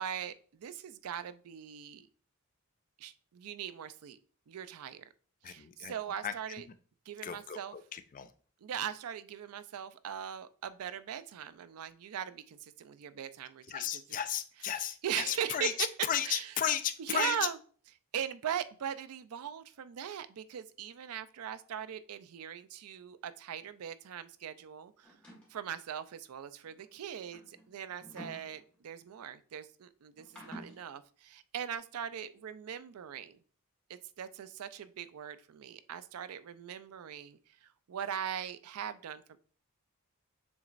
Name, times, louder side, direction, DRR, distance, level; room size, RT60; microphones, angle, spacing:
voice 1, 0.0-2.1 3.0-4.2 4.5-5.0 5.5-6.6 7.1-7.7 8.6-13.9 15.0-15.7 16.3-16.4 17.1-17.6 18.1-25.1 25.5-33.4 33.9-39.4, right 9 dB, 75° right, 14 dB, 0.4 m, -40 dB
voice 2, 5.4-5.9 6.2-6.3 7.2-8.3 13.7-17.5, left 9 dB, 35° left, 11 dB, 0.3 m, -34 dB
sound 1, 25.0-25.6 26.7-29.1 30.2-30.8, equal, 5° left, 1.5 m, -50 dB
7.0 x 3.0 x 2.5 m, 0.43 s
head